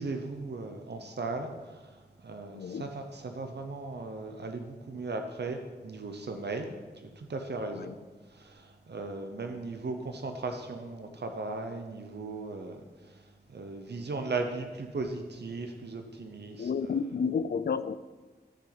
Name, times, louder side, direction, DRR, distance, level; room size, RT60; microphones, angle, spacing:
voice 1, 0.0-1.9 2.2-6.7 7.0-7.9 8.3-12.8 13.5-16.7, right 3 dB, 80° right, 5 dB, 0.9 m, -37 dB
voice 2, 2.5-2.9 7.7-7.9 16.6-18.0, left 6 dB, 75° left, 15 dB, 0.4 m, -31 dB
13.0 x 6.7 x 4.1 m, 1.3 s
wide cardioid pair, 80°, 17 cm